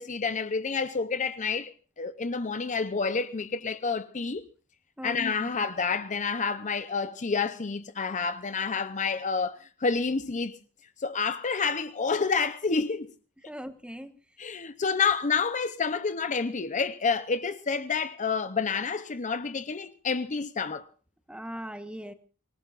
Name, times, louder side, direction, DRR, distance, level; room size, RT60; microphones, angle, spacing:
voice 1, 0.0-4.4 5.0-10.6 11.0-13.1 14.4-20.9, left 5 dB, 35° left, 0.7 m, -29 dB
voice 2, 5.0-5.5 13.5-14.1 21.3-22.1, equal, 5° right, 1.2 m, -40 dB
26.0 x 19.0 x 2.5 m
head